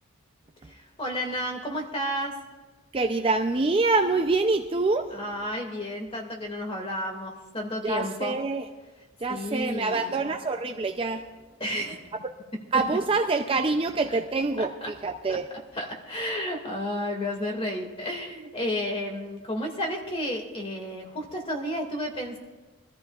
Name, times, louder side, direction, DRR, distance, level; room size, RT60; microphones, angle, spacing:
voice 1, 0.6-2.3 5.1-8.4 9.3-10.3 11.6-12.0 14.1-14.2 14.6-14.9 15.3-15.4 15.7-22.4, equal, 25° left, 1 dB, 2.1 m, -32 dB
voice 2, 2.9-5.2 7.8-8.6 9.2-11.2 12.7-15.5, right 3 dB, 25° right, 5 dB, 0.4 m, -25 dB
24.0 x 14.0 x 2.4 m, 1.2 s
head